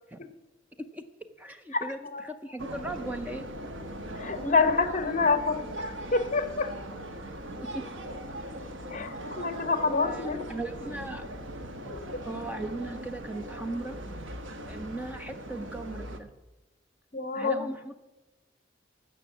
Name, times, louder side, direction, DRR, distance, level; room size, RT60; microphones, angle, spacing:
voice 1, 0.8-3.4 7.6-7.8 10.0-11.2 12.2-14.0 14.7-16.3 17.3-18.0, right 2 dB, 10° right, 8 dB, 0.5 m, -38 dB
voice 2, 1.7-2.2 4.2-6.7 8.9-10.4 11.8-12.2 17.1-17.7, left 4 dB, 40° left, 10 dB, 0.9 m, -27 dB
sound 1, 2.6-16.2, right 1 dB, 85° right, 1.2 m, -39 dB
15.0 x 6.1 x 7.2 m, 1.1 s
head